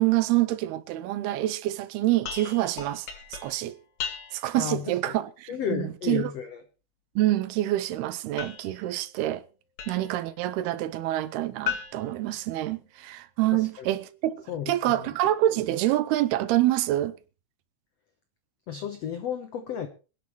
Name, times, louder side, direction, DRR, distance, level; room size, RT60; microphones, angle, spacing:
voice 1, 0.0-3.8 4.3-6.3 7.2-9.4 9.9-17.2, right 15 dB, 85° right, 2.8 m, -26 dB
sound 1, 2.2-4.6 8.4-10.3 11.7-13.1, left 8 dB, 50° left, 3.1 m, -38 dB
voice 2, 4.5-5.2 5.5-6.6 13.5-14.0 14.5-15.0 18.7-19.9, left 8 dB, 80° left, 1.4 m, -33 dB
26.0 x 9.8 x 3.1 m
omnidirectional pair, 4.5 m